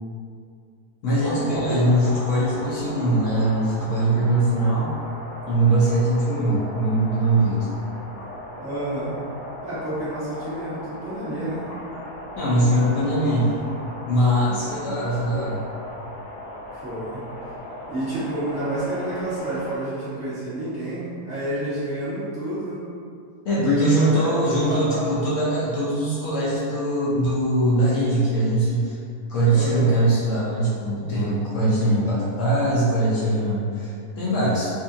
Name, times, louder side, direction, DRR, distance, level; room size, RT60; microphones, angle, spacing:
voice 1, 1.0-4.9 5.5-7.7 12.4-13.5 14.1-15.6 23.4-29.0 29.3-34.7, right 1 dB, 65° left, -8 dB, 0.8 m, -21 dB
sound 1, 1.1-19.8, left 1 dB, 85° left, 1.3 m, -36 dB
voice 2, 8.6-9.1 9.6-11.7 13.4-13.7 16.7-17.2 17.9-22.8 23.6-25.1 29.5-30.0, right 1 dB, 5° right, -14 dB, 1.2 m, -29 dB
2.6 x 2.6 x 2.5 m, 2.4 s
omnidirectional pair, 1.7 m